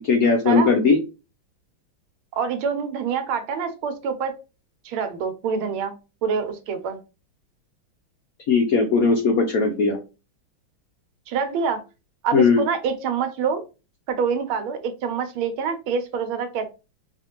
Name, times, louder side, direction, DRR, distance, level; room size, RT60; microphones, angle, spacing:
voice 1, 0.0-1.0 8.5-10.0 12.3-12.6, left 4 dB, 80° left, 5 dB, 0.7 m, -18 dB
voice 2, 2.3-4.3 4.8-6.0 6.2-7.0 11.3-11.8 12.2-13.6 14.1-16.7, right 6 dB, 85° right, 8 dB, 1.6 m, -26 dB
4.9 x 2.5 x 2.9 m, 0.30 s
omnidirectional pair, 2.3 m